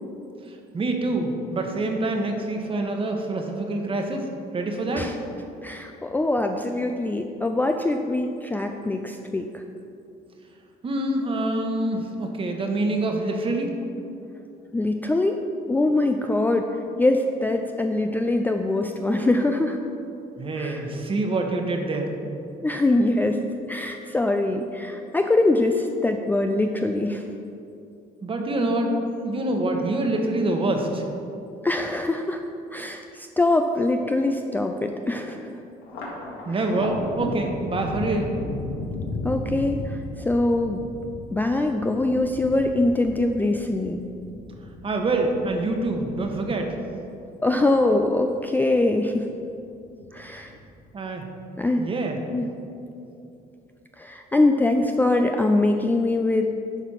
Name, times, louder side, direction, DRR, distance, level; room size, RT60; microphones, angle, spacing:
voice 1, 0.5-4.3 4.5-5.1 10.8-13.7 20.4-22.1 28.2-28.9 29.2-31.1 36.4-38.3 44.8-46.8 50.2-50.4 50.9-51.3 51.8-52.2, right 2 dB, 30° right, 3 dB, 1.2 m, -26 dB
voice 2, 5.6-9.6 14.7-16.7 17.0-19.8 20.6-20.9 22.6-27.3 31.6-32.4 32.7-35.6 39.2-40.8 41.3-44.1 47.4-49.3 50.1-50.5 51.6-51.9 52.3-52.5 54.0-56.5, left 2 dB, 10° left, 4 dB, 0.4 m, -23 dB
Thunder, 35.8-48.5 48.9-49.7 50.0-50.9, left 1 dB, 80° left, 2.1 m, -35 dB
11.0 x 4.1 x 5.8 m, 2.7 s
cardioid pair, 110°, 17 cm